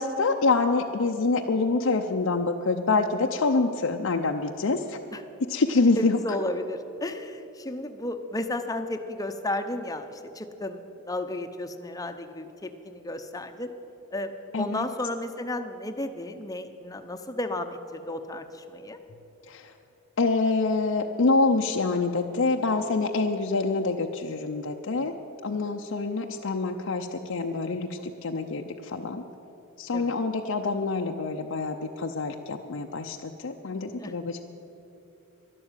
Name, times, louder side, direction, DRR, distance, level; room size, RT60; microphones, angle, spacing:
voice 1, 0.0-5.0 5.5-6.2 14.5-14.8 19.5-19.7 20.2-25.1 25.4-29.2 29.8-34.4, left 3 dB, 65° left, 3 dB, 0.6 m, -26 dB
voice 2, 6.0-13.7 14.1-19.0 29.9-30.2 34.0-34.1, left 1 dB, 15° left, 7 dB, 0.8 m, -33 dB
12.0 x 12.0 x 8.9 m, 2.9 s
head